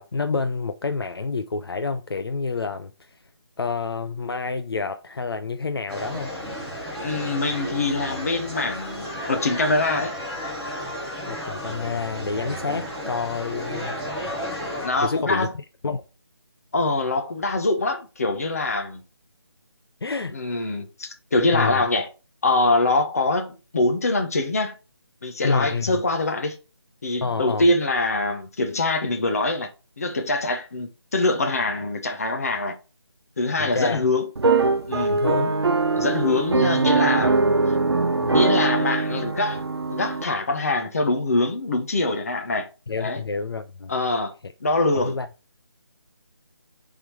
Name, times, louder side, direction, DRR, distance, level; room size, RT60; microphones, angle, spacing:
voice 1, 0.0-3.1 3.6-6.3 11.3-13.9 14.9-15.5 15.8-16.0 20.0-20.4 21.5-21.8 25.4-26.0 27.2-27.7 33.6-34.1 35.1-35.5 42.9-43.9 44.9-45.3, left 4 dB, 65° left, 0.6 m, -28 dB
sound 1, 5.9-14.9, equal, ahead, 0.6 m, -33 dB
voice 2, 7.0-10.1 14.8-15.5 16.7-19.0 20.3-22.1 22.4-24.7 25.2-26.6 27.0-29.7 30.0-32.8 33.4-34.3 34.9-35.2 36.0-37.5 38.2-39.6 39.9-42.7 43.0-43.2 43.9-44.3 44.6-45.2, left 2 dB, 35° left, 1.1 m, -24 dB
sound 2, 34.4-40.2, right 3 dB, 70° right, 1.0 m, -22 dB
6.9 x 3.7 x 4.6 m
figure-of-eight pair, 170°, 14 cm